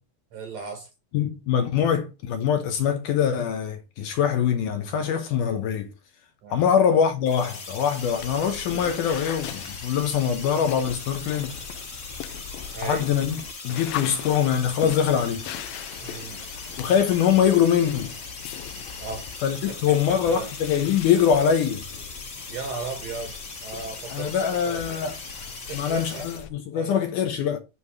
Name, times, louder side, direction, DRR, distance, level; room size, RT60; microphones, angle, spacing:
voice 1, 0.3-0.9 6.4-6.7 11.3-11.7 12.7-13.1 16.0-16.5 19.0-19.3 19.7-20.5 22.5-23.4 23.6-25.1 25.7-26.3 26.7-27.1, right 4 dB, 65° right, 1.9 m, -36 dB
voice 2, 1.1-5.9 6.5-11.6 12.8-13.4 13.6-15.5 16.8-18.1 19.4-21.8 24.1-25.1 25.7-27.6, left 8 dB, 75° left, 2.1 m, -23 dB
sound 1, 7.2-26.4, left 3 dB, 45° left, 1.1 m, -39 dB
sound 2, 8.0-26.5, left 10 dB, 90° left, 2.4 m, -40 dB
9.6 x 3.2 x 4.7 m
omnidirectional pair, 4.1 m